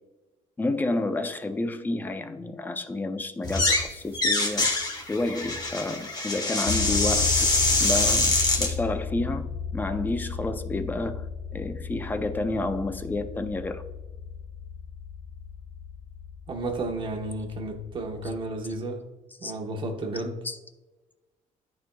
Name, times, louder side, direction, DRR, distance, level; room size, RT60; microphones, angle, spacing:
voice 1, 0.6-4.7 5.1-7.3 7.8-9.5 9.7-11.2 11.5-13.8 19.4-19.5 20.1-20.6, left 2 dB, 15° left, 8 dB, 0.5 m, -30 dB
sound 1, 3.4-3.9 4.1-8.7, left 2 dB, 30° left, 1.3 m, -24 dB
sound 2, 6.7-18.6, left 6 dB, 65° left, 0.8 m, -35 dB
voice 2, 16.5-19.0 19.4-20.4, right 2 dB, 35° right, 3 dB, 1.0 m, -32 dB
12.5 x 4.5 x 2.2 m, 1.1 s
cardioid pair, 155°, 14 cm